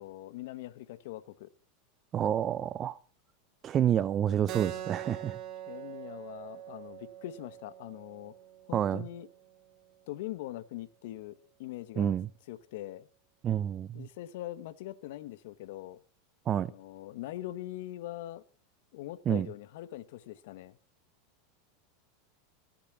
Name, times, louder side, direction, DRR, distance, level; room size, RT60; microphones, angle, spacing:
voice 1, 0.0-1.5 5.7-8.3 8.7-9.3 10.1-12.1 12.5-13.1 13.9-16.0 16.6-18.4 18.9-20.8, left 14 dB, 70° left, 0.9 m, -42 dB
voice 2, 2.1-3.0 3.6-5.4 8.7-9.0 12.0-12.3 13.4-14.1 16.5-16.7 19.3-19.5, right 9 dB, 35° right, 0.5 m, -28 dB
Keyboard (musical), 4.5-9.6, right 12 dB, 50° right, 2.1 m, -43 dB
15.0 x 10.5 x 6.0 m
hypercardioid pair, 105°, 0 cm